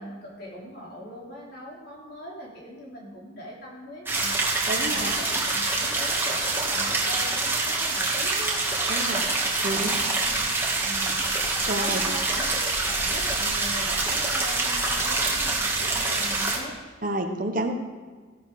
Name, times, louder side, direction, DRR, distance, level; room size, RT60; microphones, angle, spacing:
voice 1, 0.0-4.4 4.8-8.6 9.2-10.4 10.8-11.2 11.8-16.8, equal, 55° left, -3 dB, 4.0 m, -40 dB
sound 1, 4.1-16.6, right 3 dB, 10° right, 2.0 m, -26 dB
voice 2, 4.7-5.1 8.9-9.2 9.6-9.9 11.7-12.0 17.0-17.7, right 1 dB, 45° right, 5 dB, 1.3 m, -29 dB
16.0 x 11.5 x 5.0 m, 1.5 s
head